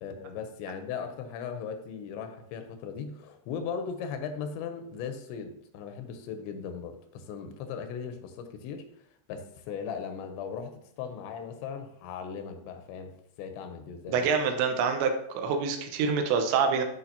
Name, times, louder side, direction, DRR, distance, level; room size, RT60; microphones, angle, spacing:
voice 1, 0.0-8.9 9.3-14.3, left 6 dB, 85° left, 7 dB, 2.9 m, -38 dB
voice 2, 14.1-16.8, right 5 dB, 85° right, 5 dB, 3.1 m, -26 dB
13.0 x 4.6 x 2.8 m, 0.70 s
omnidirectional pair, 5.2 m